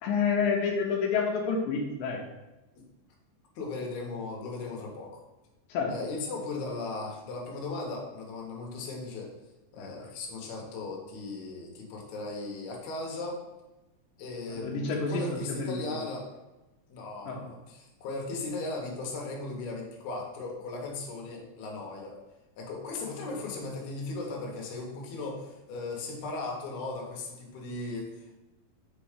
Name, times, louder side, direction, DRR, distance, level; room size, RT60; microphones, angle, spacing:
voice 1, 0.0-2.2 5.7-5.9 9.8-9.9 14.6-15.2 15.5-15.8 17.3-17.5, left 5 dB, 80° left, 0 dB, 2.5 m, -28 dB
voice 2, 3.6-5.1 5.9-9.3 9.7-13.4 14.2-16.3 16.9-22.2 22.6-28.4, left 3 dB, 65° left, -1 dB, 2.2 m, -37 dB
5.5 x 4.1 x 4.9 m, 1.0 s
omnidirectional pair, 4.0 m